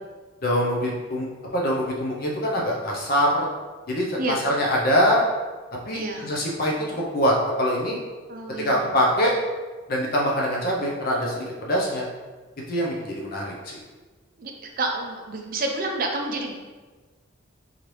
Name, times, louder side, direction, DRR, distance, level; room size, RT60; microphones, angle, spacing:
voice 1, 0.4-3.5 3.9-5.2 5.9-8.0 8.6-9.3 9.9-12.1 12.7-13.8, equal, 45° left, -2 dB, 0.5 m, -24 dB
voice 2, 5.9-6.3 8.3-8.9 14.4-14.5 14.8-16.5, right 2 dB, 45° right, 2 dB, 0.5 m, -29 dB
3.8 x 3.0 x 3.1 m, 1.3 s
head